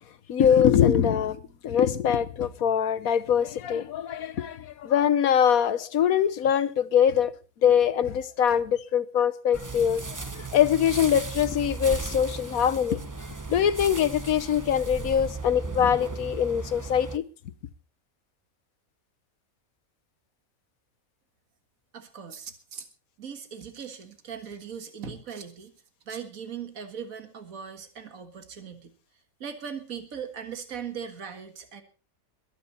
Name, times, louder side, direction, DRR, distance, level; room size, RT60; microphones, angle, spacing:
voice 1, 0.3-7.3 7.6-10.0 10.3-13.0 13.5-17.2, left 9 dB, 75° left, 1.4 m, -23 dB
sound 1, 9.5-17.2, right 3 dB, 15° right, 0.8 m, -36 dB
voice 2, 21.9-22.9 23.2-25.7 26.1-28.9 29.4-31.8, right 7 dB, 70° right, 2.1 m, -39 dB
22.5 x 9.7 x 4.2 m
omnidirectional pair, 1.5 m